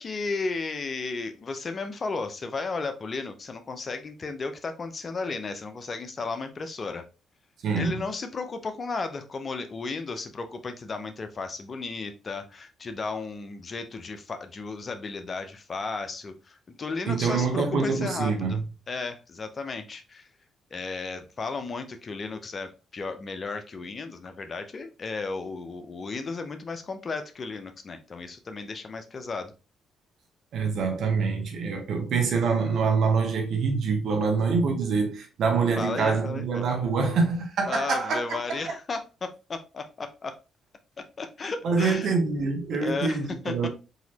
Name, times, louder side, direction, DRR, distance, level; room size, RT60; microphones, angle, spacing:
voice 1, 0.0-7.0 7.7-20.3 20.7-29.5 35.5-36.7 37.7-40.4 41.2-42.2 42.8-43.2 43.4-43.7, left 4 dB, 45° left, 0.7 m, -34 dB
voice 2, 7.6-8.0 17.1-18.6 30.5-38.7 41.6-43.7, right 4 dB, 70° right, 1.1 m, -25 dB
3.9 x 2.9 x 2.8 m
supercardioid pair, 65°, 0 cm